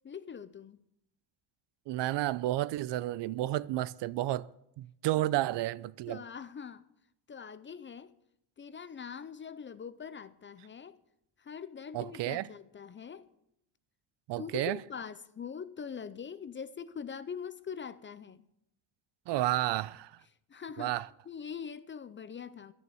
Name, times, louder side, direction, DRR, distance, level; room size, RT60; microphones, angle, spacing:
voice 1, 0.0-0.8 5.2-5.3 6.1-6.9 7.3-8.1 8.6-11.0 11.4-13.3 14.4-18.4 20.5-20.9 21.3-22.7, left 7 dB, 25° left, 0.4 m, -43 dB
voice 2, 1.9-4.5 4.8-6.2 11.9-12.5 14.3-14.8 19.3-20.1 20.8-21.1, right 15 dB, 65° right, 0.5 m, -31 dB
11.0 x 11.0 x 7.0 m
cardioid pair, 130°, 46 cm